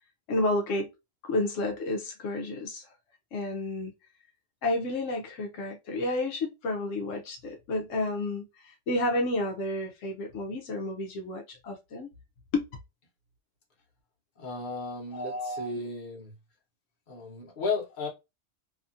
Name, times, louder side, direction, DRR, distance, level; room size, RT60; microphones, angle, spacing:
voice 1, 0.3-0.9 1.2-2.9 3.3-3.9 4.6-12.1 12.5-12.6 15.1-15.7, left 2 dB, 80° left, 1.0 m, -31 dB
voice 2, 14.4-16.3 17.1-18.1, left 4 dB, 45° left, 1.1 m, -34 dB
2.8 x 2.4 x 2.5 m
omnidirectional pair, 1.3 m